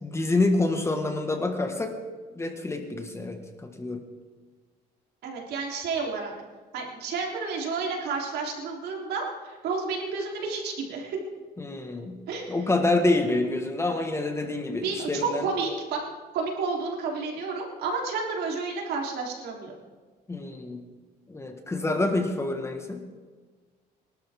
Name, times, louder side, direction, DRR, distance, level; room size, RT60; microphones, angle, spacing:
voice 1, 0.0-2.0 2.4-4.0 11.6-12.2 12.5-15.5 20.3-20.8 21.3-23.0, left 2 dB, 15° left, 5 dB, 1.7 m, -27 dB
voice 2, 5.2-6.3 6.7-11.2 12.3-12.6 14.8-16.0 16.3-19.7, right 4 dB, 75° right, 0 dB, 3.8 m, -31 dB
24.0 x 12.5 x 3.8 m, 1.4 s
cardioid pair, 110°, 17 cm